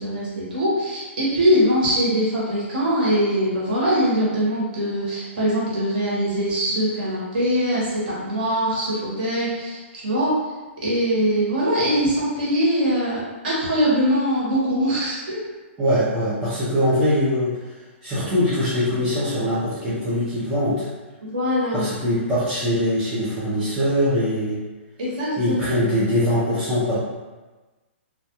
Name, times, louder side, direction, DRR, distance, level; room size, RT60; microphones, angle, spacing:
voice 1, 0.0-10.4 10.8-15.4 21.2-21.9 22.1-22.2 25.0-25.6, equal, 45° right, -7 dB, 1.0 m, -22 dB
voice 2, 15.8-17.6 18.0-20.9 21.7-24.6 25.4-27.0, equal, 5° right, -13 dB, 0.4 m, -22 dB
2.2 x 2.2 x 2.8 m, 1.2 s
hypercardioid pair, 170°, 7 cm